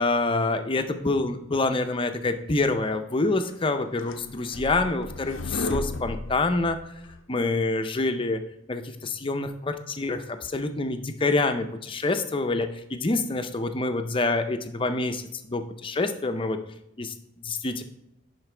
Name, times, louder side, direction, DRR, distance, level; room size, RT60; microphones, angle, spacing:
voice 1, 0.0-5.4 5.7-6.7 7.3-8.4 8.7-8.8 9.2-9.5 10.0-10.2 10.5-11.6 12.0-12.7 13.0-15.1 15.5-15.6 16.0-16.6 17.6-17.8, left 2 dB, 25° left, 8 dB, 0.5 m, -26 dB
sound 1, 3.5-7.2, left 2 dB, 70° left, 0.5 m, -34 dB
10.5 x 4.5 x 3.3 m, 0.81 s
head